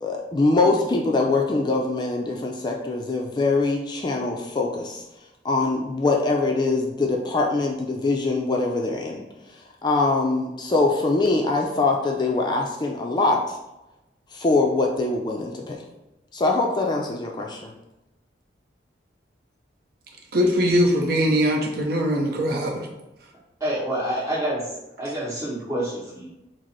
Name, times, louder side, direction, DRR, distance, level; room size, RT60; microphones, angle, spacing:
voice 1, 0.0-5.0 5.4-9.2 9.8-13.6 14.3-15.8 16.3-17.7, left 3 dB, 25° left, 1 dB, 0.4 m, -23 dB
voice 2, 20.3-22.9, equal, 55° right, 0 dB, 0.6 m, -21 dB
voice 3, 23.6-24.6 25.0-26.3, right 1 dB, 20° right, -6 dB, 1.3 m, -27 dB
4.9 x 2.0 x 4.3 m, 0.97 s
head